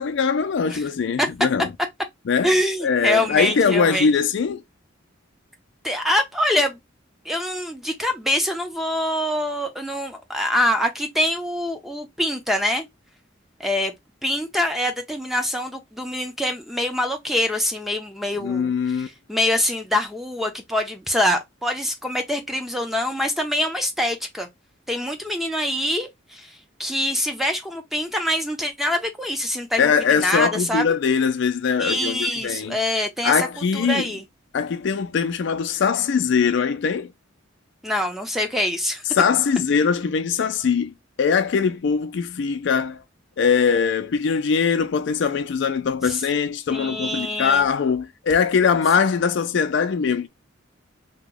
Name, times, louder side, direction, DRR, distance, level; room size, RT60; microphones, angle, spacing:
voice 1, 0.0-1.7 2.3-2.5 2.8-4.6 18.4-19.1 29.8-32.8 33.2-34.0 34.5-37.1 39.1-40.9 41.2-43.0 43.4-50.3, left 6 dB, 65° left, 0.4 m, -21 dB
voice 2, 2.4-4.1 5.8-6.8 7.2-12.9 13.6-13.9 14.2-24.5 24.9-30.9 31.8-33.5 33.7-34.2 37.8-39.0 46.0-46.2 46.7-47.7 49.0-49.1, left 1 dB, ahead, 0.6 m, -25 dB
2.9 x 2.2 x 3.7 m
head